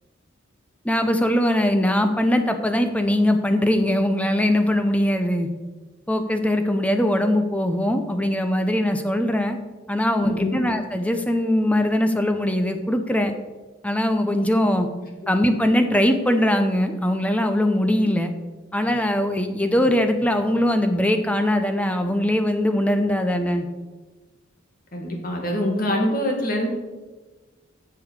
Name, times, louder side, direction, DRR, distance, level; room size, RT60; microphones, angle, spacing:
voice 1, 0.8-5.5 6.1-9.6 9.9-13.3 13.8-14.9 15.3-18.3 18.7-23.7, left 1 dB, 5° left, 7 dB, 0.7 m, -21 dB
voice 2, 10.2-10.6 24.9-26.7, left 1 dB, 45° left, 1 dB, 1.9 m, -24 dB
7.7 x 7.0 x 6.6 m, 1.2 s
head